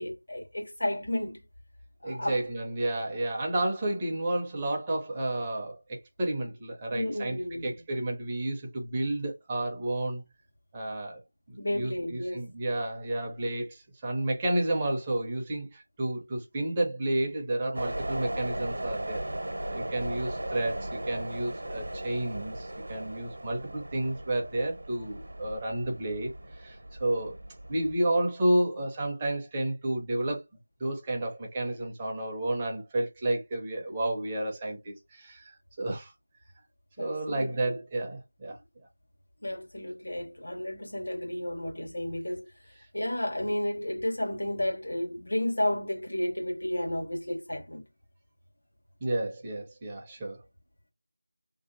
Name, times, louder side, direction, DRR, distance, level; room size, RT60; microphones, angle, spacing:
voice 1, 0.0-1.4 2.0-2.4 6.9-7.8 11.6-12.4 37.0-37.8 39.4-42.4 42.9-47.8, left 1 dB, 70° left, 1.1 m, -32 dB
voice 2, 2.0-7.4 7.6-10.2 10.7-11.2 11.5-19.2 19.7-27.4 27.7-30.4 30.8-36.1 37.0-38.6 49.0-50.4, right 1 dB, 10° right, 0.5 m, -31 dB
sound 1, 17.7-27.9, right 1 dB, 65° right, 0.8 m, -37 dB
3.1 x 2.7 x 2.6 m
figure-of-eight pair, 175°, 0 cm